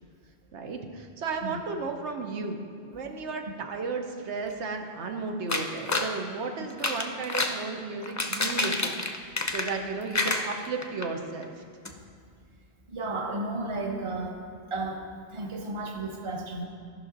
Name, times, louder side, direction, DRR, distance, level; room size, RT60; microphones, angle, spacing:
voice 1, 0.5-9.0 9.5-11.5, right 4 dB, 90° right, 4 dB, 1.1 m, -34 dB
sound 1, 5.5-6.1 6.7-7.6 8.0-9.9 10.1-11.1 11.4-11.5 11.8-11.9, left 2 dB, 25° left, 0.4 m, -28 dB
voice 2, 12.9-14.4 14.7-16.7, right 2 dB, 30° right, 2 dB, 0.9 m, -33 dB
14.5 x 5.7 x 3.9 m, 2.2 s
omnidirectional pair, 1.1 m